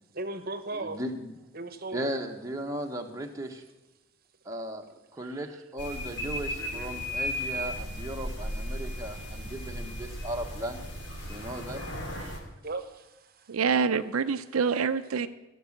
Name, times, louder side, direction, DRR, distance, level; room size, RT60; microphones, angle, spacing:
voice 1, 0.1-1.0 1.5-2.1 6.6-7.0 11.2-11.5 12.6-13.6, right 2 dB, 45° right, 10 dB, 1.0 m, -38 dB
voice 2, 0.7-1.4 1.9-3.6 4.4-10.8 11.3-11.8, right 1 dB, 15° right, 2 dB, 1.1 m, -36 dB
sound 1, 5.8-12.4, equal, 55° left, 2.8 m, -35 dB
voice 3, 13.5-15.3, right 5 dB, 85° right, 10 dB, 0.5 m, -26 dB
16.0 x 6.1 x 7.3 m, 1.0 s
head